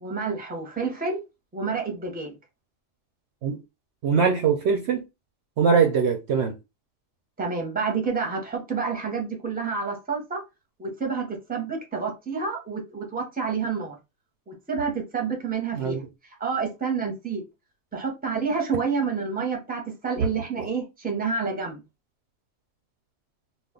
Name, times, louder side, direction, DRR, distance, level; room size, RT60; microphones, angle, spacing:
voice 1, 0.0-1.2 1.5-2.3 7.4-10.4 10.8-14.0 14.5-16.0 16.4-17.4 17.9-21.8, right 5 dB, 10° right, 0.6 m, -29 dB
voice 2, 4.0-5.0 5.6-6.5 15.7-16.0 20.2-20.3 20.6-20.7, right 6 dB, 65° right, 0.8 m, -22 dB
2.4 x 2.3 x 3.6 m
omnidirectional pair, 1.3 m